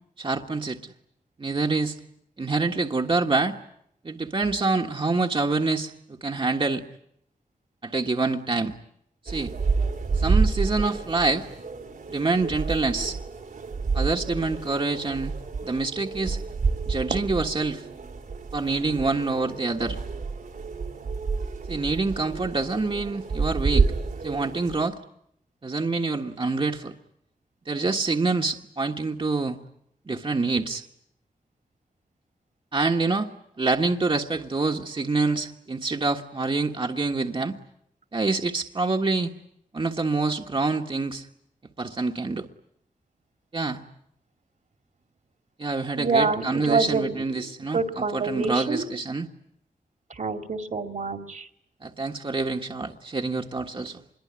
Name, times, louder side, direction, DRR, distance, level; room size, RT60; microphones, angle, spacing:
voice 1, 0.2-0.9 1.4-2.0 2.4-3.5 4.0-5.9 6.2-6.8 7.8-8.7 9.2-9.5 10.1-11.5 12.1-13.2 13.9-15.3 15.6-16.4 16.9-17.8 18.5-20.0 21.7-23.9 24.2-25.0 25.6-26.9 27.7-29.6 30.1-30.8 32.7-33.3 33.6-37.6 38.1-39.3 39.7-41.3 41.8-42.5 43.5-43.8 45.6-49.3 51.8-54.0, right 3 dB, 40° right, 2 dB, 1.5 m, -26 dB
sound 1, 9.3-24.9, right 4 dB, 80° right, 3.1 m, -29 dB
voice 2, 46.0-47.5 47.7-48.9 50.2-51.5, right 4 dB, 65° right, 6 dB, 2.5 m, -26 dB
25.5 x 22.5 x 9.7 m, 0.76 s
cardioid pair, 60°, 14 cm